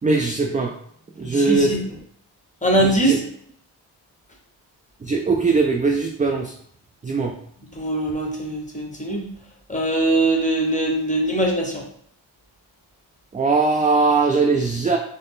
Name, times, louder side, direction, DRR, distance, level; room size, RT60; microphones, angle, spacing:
voice 1, 0.0-0.7 1.2-1.8 2.8-3.2 5.0-6.5 7.0-7.3 13.3-15.0, right 3 dB, 20° right, 2 dB, 0.4 m, -20 dB
voice 2, 1.3-1.8 2.6-3.2 7.7-9.3 9.7-11.8, right 1 dB, 15° left, -1 dB, 1.2 m, -21 dB
3.7 x 2.1 x 3.5 m, 0.65 s
supercardioid pair, 50°, 48 cm